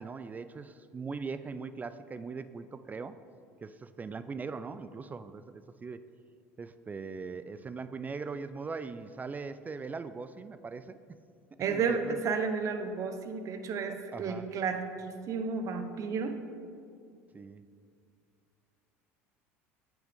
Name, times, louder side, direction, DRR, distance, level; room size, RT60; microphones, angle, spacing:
voice 1, 0.0-3.2 3.6-6.0 6.6-11.0 11.7-12.2 13.9-14.5 17.3-17.6, right 4 dB, 20° right, 12 dB, 0.3 m, -40 dB
voice 2, 11.6-16.4, right 5 dB, 45° right, 7 dB, 0.8 m, -32 dB
9.5 x 6.2 x 3.6 m, 2.3 s
hypercardioid pair, 80°, 7 cm